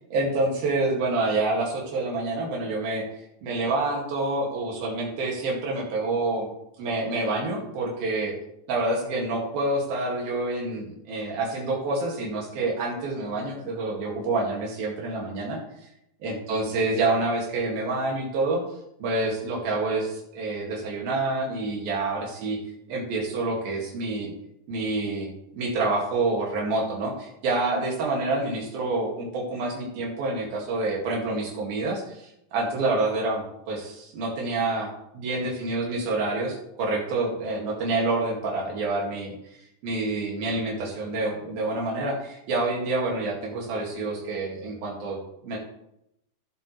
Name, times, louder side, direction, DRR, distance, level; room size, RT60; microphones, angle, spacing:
voice 1, 0.1-3.0 3.4-6.5 6.8-8.3 8.7-15.6 16.2-18.6 19.0-22.6 22.9-24.3 24.7-25.3 25.5-45.2 45.4-45.6, right 2 dB, 85° right, -2 dB, 4.2 m, -27 dB
17.0 x 8.1 x 3.3 m, 0.81 s
omnidirectional pair, 4.1 m